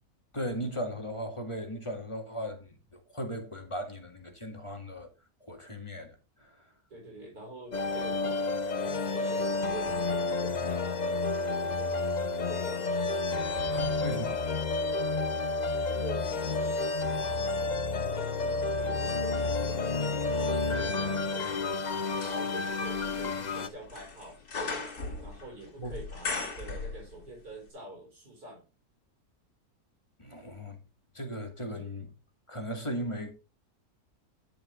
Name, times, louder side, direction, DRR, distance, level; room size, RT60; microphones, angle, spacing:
voice 1, 0.3-5.1 5.4-6.6 13.7-14.5 25.8-25.9 30.2-30.8 31.1-32.1 32.5-33.3, equal, 20° left, 2.0 m, -37 dB
voice 2, 6.9-8.5 8.8-11.0 11.5-12.1 12.4-13.1 15.8-17.6 18.1-21.8 22.2-24.4 25.2-28.6 31.7-31.9, right 2 dB, 80° right, 5.1 m, -46 dB
sound 1, 7.7-23.7, left 3 dB, 40° left, 0.7 m, -30 dB
sound 2, 13.3-15.5 16.1-27.4 27.7-27.8, left 4 dB, 85° left, 2.8 m, -42 dB
10.5 x 6.7 x 3.8 m
omnidirectional pair, 1.6 m